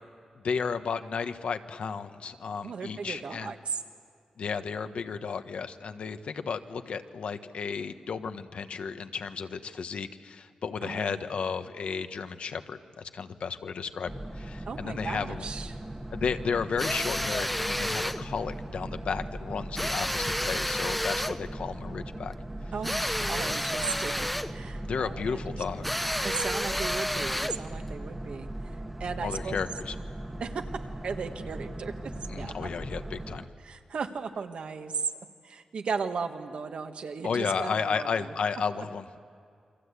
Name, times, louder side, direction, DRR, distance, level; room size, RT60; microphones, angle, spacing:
voice 1, 0.4-3.5 4.4-15.5 16.1-22.3 23.2-23.6 24.8-25.8 29.2-29.9 32.3-33.5 37.2-39.2, left 5 dB, 75° left, 9 dB, 1.2 m, -33 dB
voice 2, 2.6-3.8 10.8-11.3 14.7-15.8 22.7-25.9 26.2-28.7 29.0-29.6 30.4-32.7 33.6-35.1 35.4-38.3 38.7-38.8, right 5 dB, 70° right, 6 dB, 1.7 m, -36 dB
Boat Water vehicle, 14.0-33.5, right 1 dB, 15° right, 1.4 m, -39 dB
sound 1, 16.8-18.2 19.8-21.4 22.8-24.6 25.8-27.7, equal, 5° left, 0.7 m, -30 dB
28.5 x 24.5 x 8.3 m, 2.4 s
wide cardioid pair, 150°, 2 cm